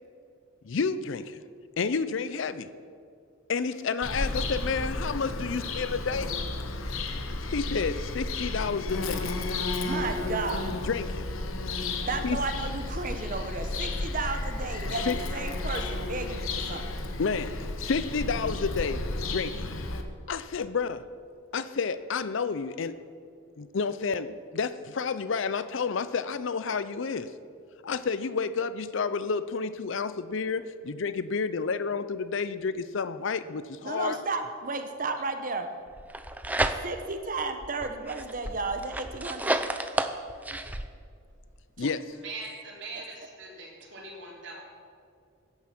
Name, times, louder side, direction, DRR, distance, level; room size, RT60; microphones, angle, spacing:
voice 1, 0.6-1.4 1.8-2.7 3.5-6.3 7.5-9.3 10.8-11.3 12.2-12.4 15.1-15.2 17.2-19.0 19.3-19.7 20.3-21.0 21.5-23.0 23.6-27.3 27.8-34.2 41.8-42.2, left 5 dB, 65° left, 14 dB, 0.5 m, -30 dB
Bird vocalization bird call bird song, 4.0-20.0, left 2 dB, 85° left, 1.2 m, -33 dB
voice 2, 9.8-10.7 12.0-16.9 33.8-35.7 36.8-39.6 41.8-41.9, right 3 dB, 40° right, 6 dB, 1.0 m, -33 dB
sound 1, 36.0-37.2 37.6-40.9, right 1 dB, 10° right, 0.5 m, -31 dB
voice 3, 42.2-44.6, right 3 dB, 60° right, -2 dB, 3.3 m, -41 dB
15.5 x 9.9 x 5.9 m, 2.3 s
head